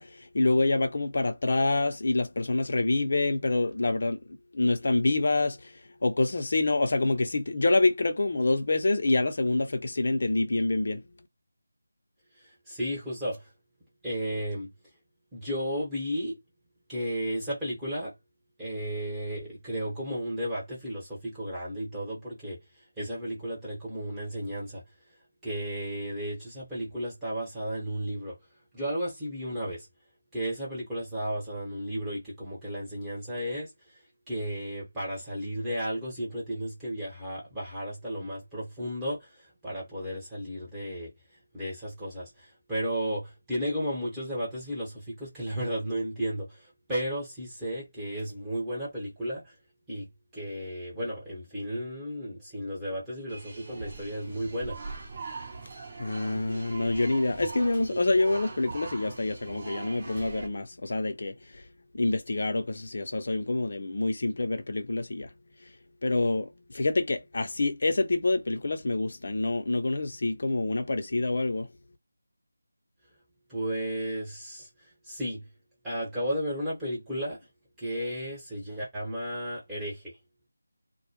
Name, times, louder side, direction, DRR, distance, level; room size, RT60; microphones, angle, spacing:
voice 1, 0.0-5.7 6.0-11.0 56.0-61.6 61.9-65.3 66.0-71.7, left 2 dB, 50° left, 0.6 m, -27 dB
voice 2, 12.7-13.5 14.0-14.7 15.3-16.4 16.9-18.1 18.6-22.6 23.0-24.8 25.4-28.4 28.7-29.9 30.3-33.7 34.3-41.1 41.5-49.5 49.9-54.8 73.5-74.7 75.0-75.5 75.8-77.4 77.8-80.2, equal, 5° right, 1.1 m, -33 dB
sound 1, 53.3-60.5, right 3 dB, 35° right, 0.8 m, -41 dB
2.1 x 2.1 x 3.0 m
figure-of-eight pair, 170°, 0 cm